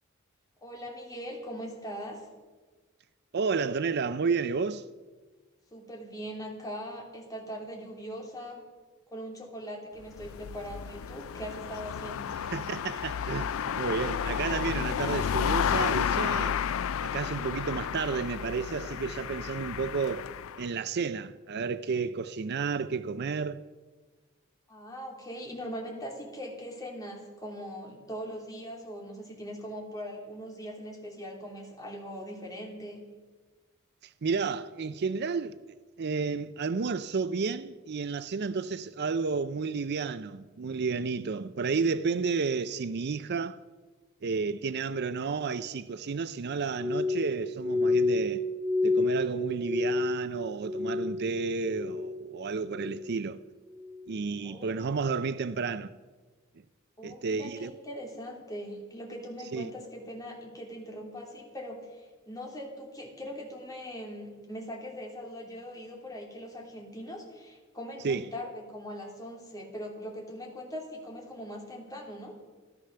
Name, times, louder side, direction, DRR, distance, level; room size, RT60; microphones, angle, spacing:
voice 1, 0.6-2.3 5.7-8.6 9.1-12.4 24.7-33.0 54.4-55.1 57.0-72.4, equal, 20° left, 3.0 m, -41 dB
voice 2, 3.3-4.8 12.4-16.6 17.0-20.3 20.6-23.6 34.0-35.6 36.0-43.6 44.2-48.5 48.8-53.4 54.1-55.9 57.0-57.7 59.5-59.7 68.0-68.3, right 5 dB, 55° right, 0.5 m, -31 dB
sound 1, 10.0-20.6, left 7 dB, 75° left, 0.4 m, -32 dB
Glass, 46.7-51.3 51.6-52.3 52.7-53.2 53.8-54.1, left 2 dB, 10° right, 1.8 m, -29 dB
15.0 x 12.5 x 6.7 m
head